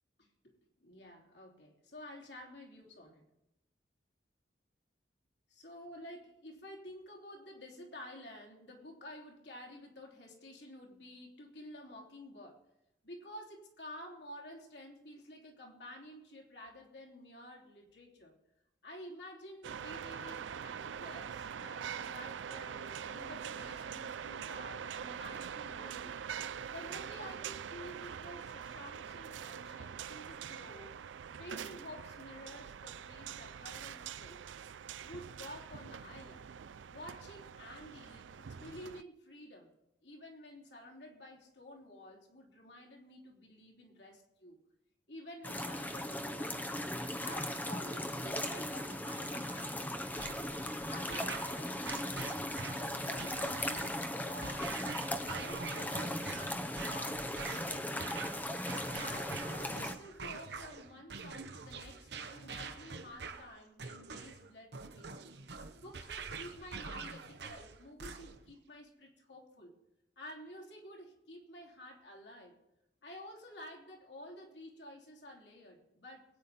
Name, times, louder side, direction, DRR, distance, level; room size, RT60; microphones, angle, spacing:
voice 1, 0.2-0.5 0.8-3.3 5.5-12.6 13.0-18.3 18.8-26.1 26.7-31.0 31.4-34.4 35.0-36.5 36.9-39.7 40.0-44.6 45.1-46.7 47.2-50.4 50.8-54.8 55.2-58.3 59.0-65.2 65.8-69.8 70.2-72.6 73.0-76.3, left 1 dB, 70° left, -1 dB, 3.4 m, -51 dB
sound 1, 19.6-39.0, right 8 dB, 85° right, 0.4 m, -44 dB
sound 2, 45.4-59.9, left 1 dB, 10° left, 0.7 m, -38 dB
sound 3, 50.2-68.5, right 4 dB, 65° right, 0.9 m, -45 dB
22.0 x 9.4 x 4.2 m, 0.88 s
head